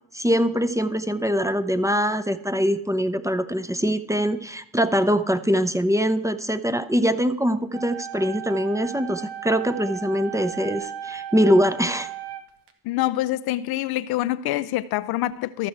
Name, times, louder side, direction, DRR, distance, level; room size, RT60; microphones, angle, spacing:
voice 1, 0.1-12.1, equal, 5° right, 0.6 m, -23 dB
sound 1, 7.7-12.7, right 12 dB, 65° right, 1.4 m, -36 dB
voice 2, 12.8-15.7, left 15 dB, 55° left, 0.5 m, -25 dB
14.0 x 6.2 x 4.6 m
hypercardioid pair, 60°, 44 cm